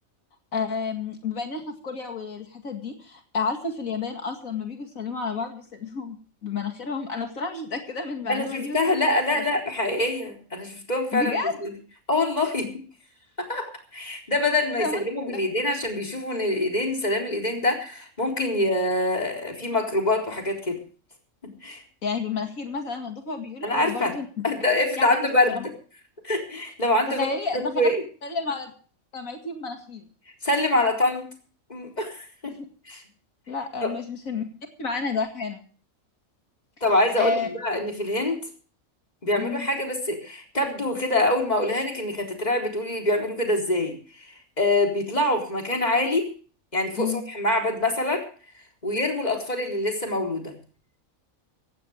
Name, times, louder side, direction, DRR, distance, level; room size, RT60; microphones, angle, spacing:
voice 1, 0.5-9.0 9.3-9.4 11.1-11.5 14.8-15.0 22.0-24.3 25.0-25.2 25.5-25.7 27.1-27.9 28.2-28.7 29.1-30.0 32.5-32.7 33.5-34.4 34.8-35.6 37.2-37.5 39.4-39.7 47.0-47.2, left 4 dB, 80° left, 4 dB, 2.7 m, -30 dB
voice 2, 8.3-11.4 11.6-11.7 12.1-12.7 13.4-20.8 21.6-21.8 23.6-24.1 24.4-25.6 26.2-27.3 27.5-28.0 30.4-31.2 31.7-32.6 32.9-33.0 33.8-33.9 36.8-38.4 39.2-44.0 44.6-46.3 46.7-48.3 48.8-50.6, left 1 dB, 30° left, 1 dB, 4.0 m, -25 dB
18.5 x 16.0 x 3.5 m, 0.40 s
omnidirectional pair, 1.4 m